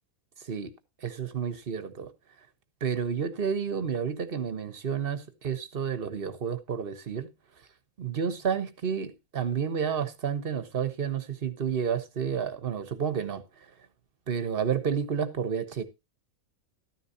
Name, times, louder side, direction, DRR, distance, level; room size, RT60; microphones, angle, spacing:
voice 1, 1.0-2.1 2.8-7.3 8.0-13.4 14.3-15.8, right 7 dB, 40° right, 1.3 m, -30 dB
13.5 x 10.0 x 2.8 m
omnidirectional pair, 1.5 m